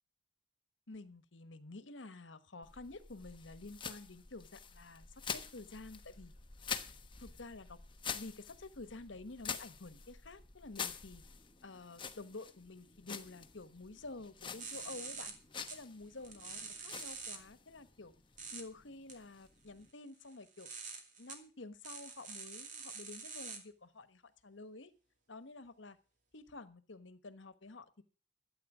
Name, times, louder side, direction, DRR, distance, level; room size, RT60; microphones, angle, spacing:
voice 1, 0.9-6.3 7.2-7.8 8.1-11.2 11.6-15.3 15.7-18.1 18.5-20.7 21.2-24.9 25.3-26.0 26.3-28.0, left 3 dB, 80° left, 12 dB, 1.3 m, -50 dB
sound 1, 2.6-19.9, left 6 dB, 25° left, 1.1 m, -47 dB
sound 2, 14.6-15.3 15.7-15.8 16.2-17.4 18.4-18.6 19.1-19.2 20.3-21.3 21.8-23.6, right 5 dB, 40° right, 2.6 m, -46 dB
13.0 x 8.8 x 6.2 m, 0.37 s
head